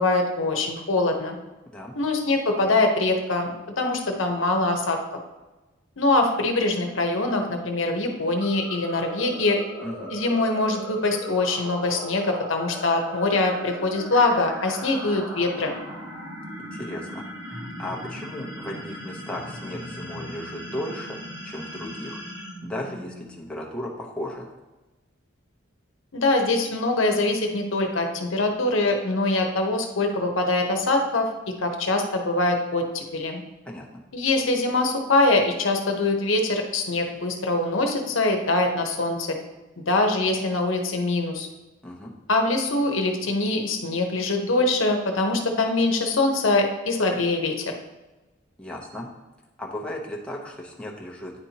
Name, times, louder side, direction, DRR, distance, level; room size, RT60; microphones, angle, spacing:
voice 1, 0.0-1.4 1.9-5.0 6.0-9.6 10.1-15.7 26.1-31.3 31.6-33.4 34.1-39.4 39.8-41.5 42.3-47.7, left 2 dB, 75° left, 3 dB, 0.9 m, -23 dB
sound 1, 8.4-23.5, equal, 70° right, 1.2 m, -38 dB
voice 2, 9.8-10.1 16.6-22.2 22.6-24.5 33.6-33.9 41.8-42.1 48.6-49.1 49.6-51.3, left 1 dB, 5° left, -3 dB, 0.8 m, -36 dB
9.5 x 4.3 x 2.8 m, 1.1 s
head